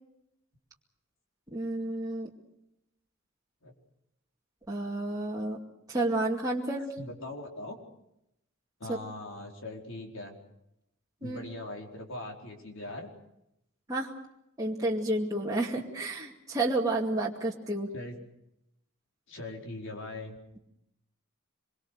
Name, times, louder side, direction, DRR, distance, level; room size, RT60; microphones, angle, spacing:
voice 1, 1.5-2.3 4.7-5.6 5.9-6.9 8.9-9.0 11.2-11.4 13.9-14.1 14.6-17.9, right 2 dB, 20° right, -3 dB, 2.3 m, -30 dB
voice 2, 7.0-7.8 8.8-10.4 11.2-13.1 17.9-18.1 19.3-20.4, left 2 dB, 65° left, 2 dB, 4.7 m, -40 dB
25.5 x 23.5 x 6.6 m, 0.83 s
head